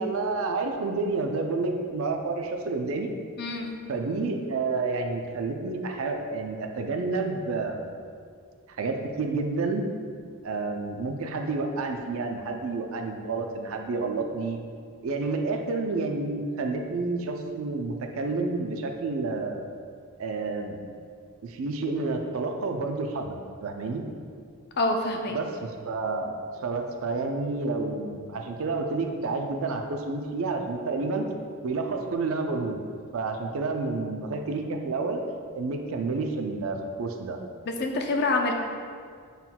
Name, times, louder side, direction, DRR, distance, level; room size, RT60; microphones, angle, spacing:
voice 1, 0.0-3.1 3.9-8.0 8.8-9.8 10.4-14.6 15.0-19.7 20.2-20.8 21.4-24.0 25.3-31.3 31.6-32.8 33.1-35.2 35.5-37.4, right 3 dB, 65° right, 4 dB, 0.4 m, -29 dB
voice 2, 3.4-3.8 24.8-25.4 37.7-38.5, left 2 dB, 45° left, 2 dB, 0.4 m, -26 dB
5.7 x 4.0 x 2.2 m, 2.1 s
head